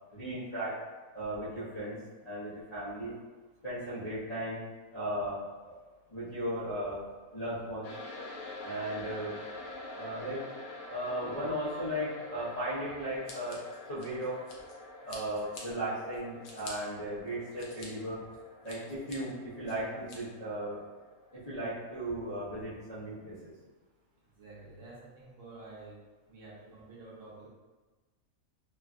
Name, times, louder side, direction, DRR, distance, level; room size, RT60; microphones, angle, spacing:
voice 1, 0.1-0.7 1.1-2.0 2.2-3.1 3.6-4.6 4.9-5.8 6.1-7.0 7.3-7.9 8.6-9.3 9.9-10.4 10.9-14.4 15.0-18.2 18.6-20.8 21.3-23.5, right 1 dB, 35° left, -13 dB, 0.8 m, -36 dB
sound 1, 7.8-22.4, left 2 dB, 85° left, 1.1 m, -47 dB
Scissors, 13.2-14.7 15.1-15.6 16.1-16.7 17.3-17.9 18.3-19.2 19.7-20.2, left 3 dB, 65° left, 0.9 m, -48 dB
voice 2, 24.3-26.0 26.3-27.5, right 2 dB, 65° right, -7 dB, 0.9 m, -49 dB
3.1 x 2.3 x 2.4 m, 1.3 s
omnidirectional pair, 1.6 m